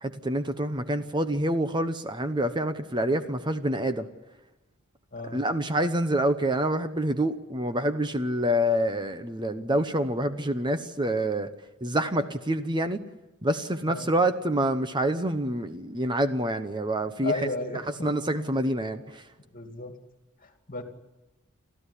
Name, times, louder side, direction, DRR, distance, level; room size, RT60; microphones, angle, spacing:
voice 1, 0.0-4.1 5.3-11.5 11.8-13.0 13.4-17.3 18.0-19.2, right 1 dB, 20° right, 9 dB, 0.9 m, -27 dB
voice 2, 17.2-18.1 19.5-19.9 20.4-20.8, left 2 dB, 40° left, 5 dB, 2.5 m, -34 dB
30.0 x 13.5 x 10.0 m, 1.0 s
head